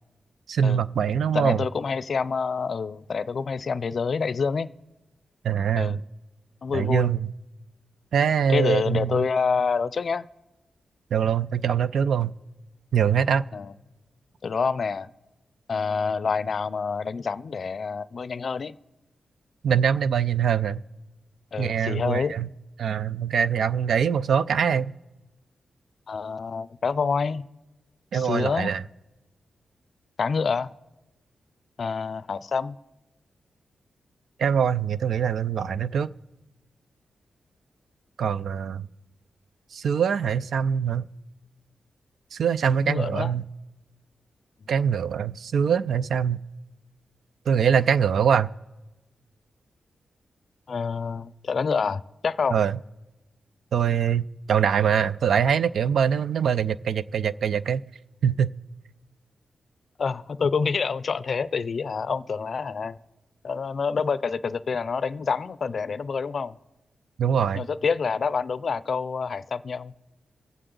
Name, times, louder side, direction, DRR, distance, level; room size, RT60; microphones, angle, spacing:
voice 1, 0.5-1.6 5.4-6.0 6.7-7.3 8.1-9.2 11.1-12.3 12.9-13.4 19.6-20.8 21.6-22.5 22.8-24.9 28.1-28.8 34.4-36.1 38.2-38.9 39.7-41.0 42.3-43.5 44.7-46.4 47.5-48.5 52.5-52.7 53.7-57.8 58.2-58.5 67.2-67.6, right 7 dB, 80° right, 0.3 m, -23 dB
voice 2, 1.3-4.7 5.8-6.0 6.6-7.1 8.5-10.2 13.5-13.7 14.4-15.1 15.7-18.8 21.5-22.3 26.1-27.4 28.1-28.8 30.2-30.7 31.8-32.8 42.8-43.3 50.7-52.6 60.0-63.0 63.4-66.6 67.6-69.9, left 5 dB, 60° left, 0.4 m, -27 dB
23.5 x 7.8 x 3.8 m
cardioid pair, 80°, 0 cm